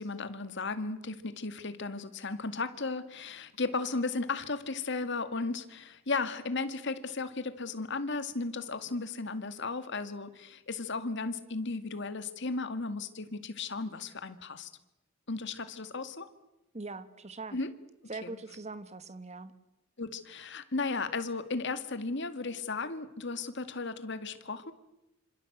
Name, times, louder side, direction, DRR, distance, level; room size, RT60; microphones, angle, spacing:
voice 1, 0.0-14.7 15.3-16.3 17.5-17.7 18.2-18.3 20.0-24.7, left 3 dB, 60° left, 2.1 m, -35 dB
voice 2, 16.7-17.6 18.1-19.5, right 3 dB, 35° right, 1.6 m, -42 dB
27.0 x 26.5 x 8.0 m
head